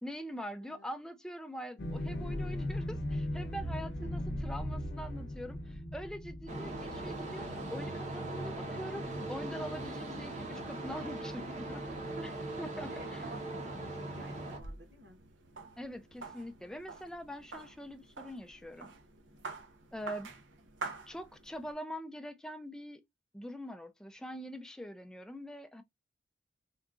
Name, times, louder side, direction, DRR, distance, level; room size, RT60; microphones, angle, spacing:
voice 1, 0.0-11.9 12.6-13.2 15.8-18.9 19.9-20.3 21.1-23.0 23.3-25.8, equal, 5° left, 0.3 m, -43 dB
sound 1, 1.8-8.3 8.6-8.7, left 1 dB, 60° left, 0.7 m, -38 dB
sound 2, 6.5-14.6, right 2 dB, 40° right, 0.8 m, -40 dB
voice 2, 12.1-15.2, right 2 dB, 65° right, 1.1 m, -53 dB
sound 3, 14.2-21.7, right 4 dB, 85° right, 0.7 m, -47 dB
3.8 x 2.3 x 2.3 m
head